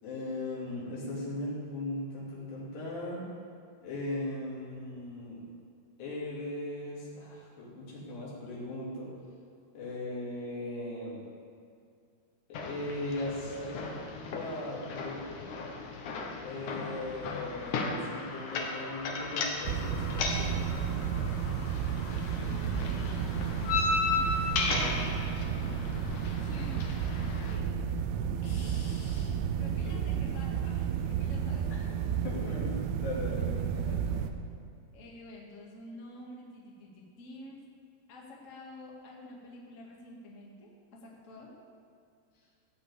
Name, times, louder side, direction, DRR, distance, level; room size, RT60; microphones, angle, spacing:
voice 1, 0.0-3.3 3.8-5.4 6.0-9.1 9.7-11.3 12.5-13.7 14.1-15.3 16.4-20.6 28.4-29.3 29.8-29.9 31.7-31.9 32.2-33.5, left 1 dB, 85° left, -5 dB, 5.0 m, -38 dB
sound 1, 12.5-27.5, left 3 dB, 65° left, 2.2 m, -35 dB
sound 2, 19.6-34.3, right 8 dB, 90° right, 2.7 m, -32 dB
sound 3, 19.9-24.8, left 1 dB, 15° left, 2.0 m, -55 dB
voice 2, 22.4-26.8 27.4-27.7 29.6-32.7 33.3-34.3 34.9-37.6 38.1-41.6, left 1 dB, 35° left, -3 dB, 1.2 m, -49 dB
16.0 x 5.4 x 8.3 m, 2.4 s
omnidirectional pair, 4.6 m